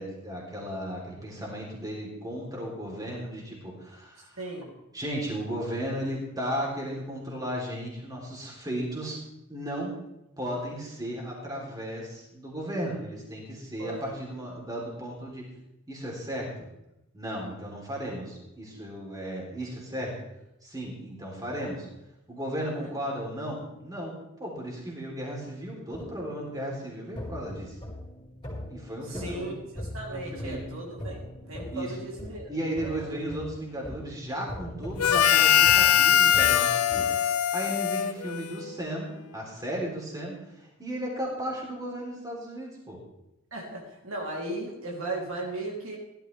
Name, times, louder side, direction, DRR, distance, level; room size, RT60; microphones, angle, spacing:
voice 1, 0.0-4.4 4.9-9.2 9.5-9.9 10.4-15.4 15.9-16.5 17.1-20.1 20.6-21.9 22.3-24.1 24.4-27.8 28.7-29.5 30.1-30.6 31.7-31.9 32.5-43.0, equal, 15° right, -2 dB, 3.5 m, -35 dB
voice 2, 4.4-4.7 13.8-14.2 22.6-22.9 29.0-32.5 32.8-33.1 43.5-46.0, right 2 dB, 60° right, -2 dB, 3.2 m, -37 dB
sound 1, 25.9-37.0, left 1 dB, 20° left, 4.5 m, -41 dB
Harmonica, 35.0-38.8, left 10 dB, 80° left, 0.6 m, -22 dB
16.5 x 12.5 x 3.4 m, 0.90 s
head